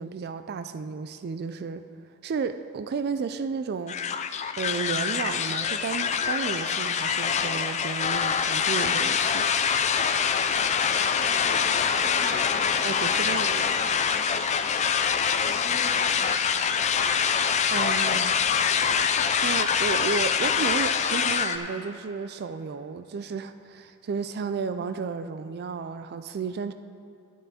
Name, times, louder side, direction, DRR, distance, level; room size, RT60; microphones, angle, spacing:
voice 1, 0.0-1.8 2.2-4.1 4.6-9.5 12.8-13.8 17.7-18.4 19.4-26.7, right 5 dB, 45° right, 11 dB, 0.3 m, -32 dB
sound 1, 3.9-21.6, left 7 dB, 30° left, 0.4 m, -25 dB
voice 2, 10.6-14.9 15.4-17.0, right 1 dB, 60° right, -4 dB, 1.5 m, -45 dB
11.5 x 9.2 x 4.2 m, 2.7 s
head